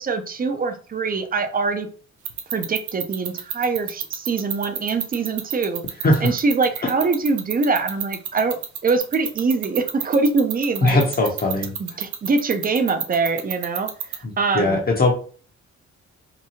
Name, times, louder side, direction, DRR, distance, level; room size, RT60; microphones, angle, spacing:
voice 1, 0.0-1.9 2.5-5.8 6.2-11.0 11.8-14.8, right 4 dB, 30° right, 7 dB, 0.5 m, -23 dB
sound 1, 2.2-14.2, right 10 dB, 75° right, 0.6 m, -28 dB
voice 2, 10.8-11.7 14.2-15.1, left 2 dB, 30° left, 0 dB, 0.7 m, -19 dB
2.8 x 2.2 x 2.8 m, 0.41 s
cardioid pair, 90°, 30 cm